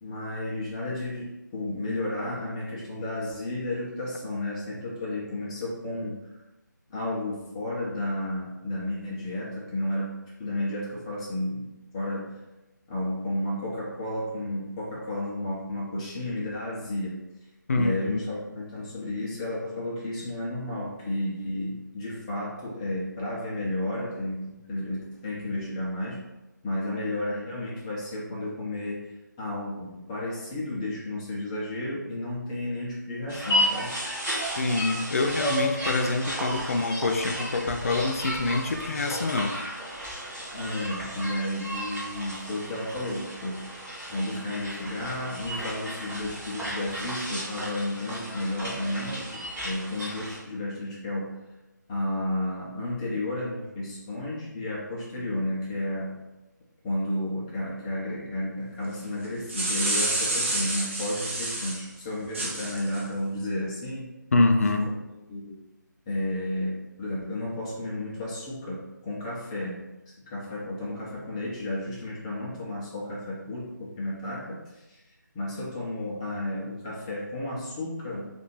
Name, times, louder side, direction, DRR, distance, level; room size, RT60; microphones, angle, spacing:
voice 1, 0.0-6.2 6.9-11.7 11.9-12.3 12.9-17.2 17.8-26.2 26.6-29.1 29.4-33.9 40.5-51.3 51.9-56.2 56.8-64.1 64.6-65.0 65.3-65.6 66.1-69.9 70.3-75.0 75.3-78.3, left 1 dB, 15° left, -6 dB, 0.8 m, -32 dB
voice 2, 17.7-18.2 34.6-39.6 64.3-64.9, left 3 dB, 45° left, 5 dB, 0.4 m, -25 dB
sound 1, 33.3-50.4, equal, 10° right, 1.2 m, -33 dB
sound 2, 59.2-61.8 62.3-63.0, right 2 dB, 40° right, 0.7 m, -28 dB
2.7 x 2.6 x 4.3 m, 1.0 s
figure-of-eight pair, 155°, 10 cm